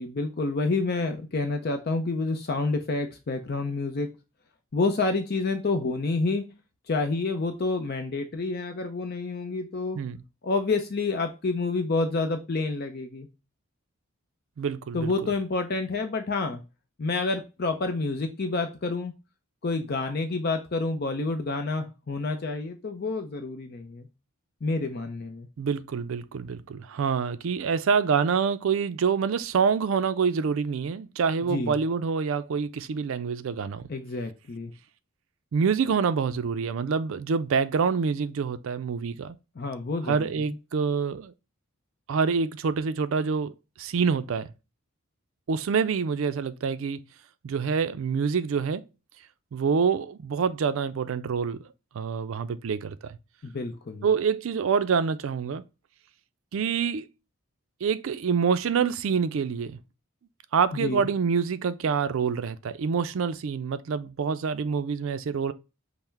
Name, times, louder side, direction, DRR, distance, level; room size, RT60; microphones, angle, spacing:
voice 1, 0.0-4.1 4.7-6.4 6.9-10.0 10.4-13.3 14.9-16.6 17.0-19.1 19.6-24.1 24.6-25.5 31.4-31.8 33.9-34.7 39.6-40.5 53.4-54.1 60.7-61.1, left 3 dB, 45° left, 0.5 m, -28 dB
voice 2, 14.6-15.1 25.6-33.9 35.5-39.4 40.1-41.3 42.1-43.5 43.8-44.5 45.5-47.0 47.4-48.9 49.5-51.7 51.9-53.2 54.0-55.6 56.5-57.1 57.8-59.8 60.5-65.5, right 6 dB, 65° right, 0.4 m, -26 dB
5.5 x 2.1 x 4.4 m
head